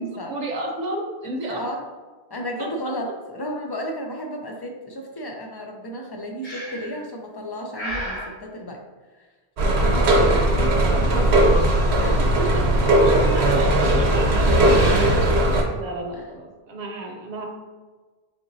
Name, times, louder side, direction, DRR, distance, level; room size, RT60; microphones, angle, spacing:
voice 1, 0.0-1.7 2.6-2.7 9.8-11.6 12.8-14.9 15.7-17.4, right 2 dB, 45° right, 1 dB, 0.8 m, -32 dB
voice 2, 1.5-1.8 2.3-8.8 9.2-9.3 10.9-11.7 12.0-12.6 16.1-16.2, equal, 35° left, 1 dB, 0.4 m, -33 dB
Breathing, 6.4-7.0 7.7-8.3, equal, 65° left, 1.3 m, -32 dB
sound 1, 9.6-15.6, right 1 dB, 75° right, 1.0 m, -18 dB
4.3 x 3.9 x 2.6 m, 1.3 s
omnidirectional pair, 1.1 m